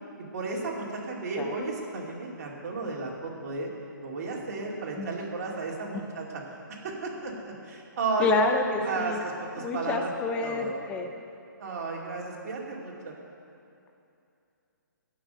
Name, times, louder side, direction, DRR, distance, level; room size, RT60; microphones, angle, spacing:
voice 1, 0.3-3.7 4.0-6.2 6.7-8.4 8.7-10.1 10.4-10.8 11.6-13.2, right 3 dB, 50° right, -2 dB, 2.6 m, -33 dB
voice 2, 8.2-9.2 9.6-11.1, left 3 dB, 10° left, 4 dB, 0.5 m, -28 dB
17.0 x 6.2 x 6.7 m, 2.6 s
hypercardioid pair, 155°, 11 cm